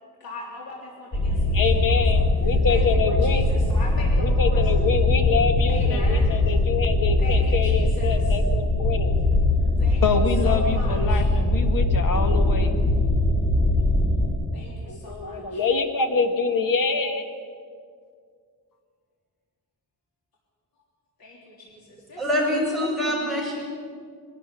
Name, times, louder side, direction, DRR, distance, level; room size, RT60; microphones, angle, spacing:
voice 1, 0.2-1.7 2.7-4.6 5.7-6.3 7.2-8.2 9.8-11.2 14.5-14.7 15.0-15.7 21.2-21.4 22.1-22.2, left 2 dB, 85° left, -3 dB, 3.4 m, -39 dB
sound 1, 1.1-14.3, left 2 dB, 30° left, 5.5 m, -21 dB
voice 2, 1.5-3.5 4.2-9.1 10.0-12.8 14.9-17.3, left 4 dB, 65° left, 6 dB, 1.9 m, -25 dB
voice 3, 22.2-23.6, left 1 dB, ahead, -3 dB, 7.3 m, -25 dB
21.5 x 13.0 x 9.8 m, 2.1 s
wide cardioid pair, 135°, 35 cm